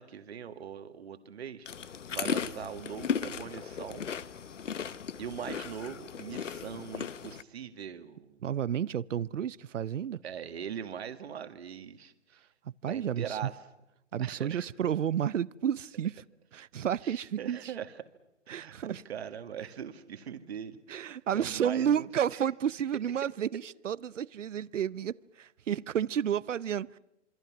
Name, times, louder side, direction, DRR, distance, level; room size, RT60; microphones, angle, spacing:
voice 1, 0.0-4.1 5.2-8.4 10.2-12.4 12.9-13.5 14.2-14.7 17.0-17.9 18.5-22.4, right 8 dB, 55° right, 1.9 m, -41 dB
sound 1, 1.7-7.4, left 7 dB, 75° left, 1.2 m, -36 dB
voice 2, 8.4-10.2 12.8-13.4 14.1-16.2 16.5-17.7 18.5-19.0 20.9-27.0, right 9 dB, 75° right, 0.8 m, -31 dB
27.5 x 25.0 x 6.0 m
hypercardioid pair, 150°, 37 cm